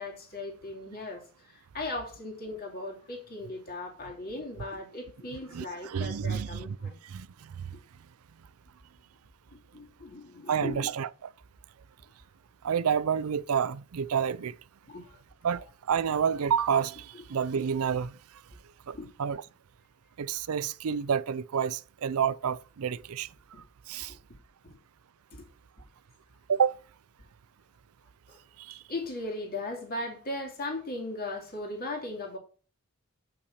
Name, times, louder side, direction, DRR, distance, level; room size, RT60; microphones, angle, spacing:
voice 1, 0.0-7.0 9.5-10.9 14.8-15.2 18.9-19.1 23.5-23.6 24.6-24.7 25.3-25.4 28.3-28.4 28.9-32.4, left 2 dB, 45° left, 2.4 m, -38 dB
voice 2, 5.5-7.7 10.5-11.3 12.6-14.5 15.4-18.2 18.9-19.4 20.2-23.3 23.9-24.1 26.5-26.8 28.6-28.8, right 7 dB, 75° right, 0.4 m, -29 dB
8.2 x 5.8 x 4.3 m
head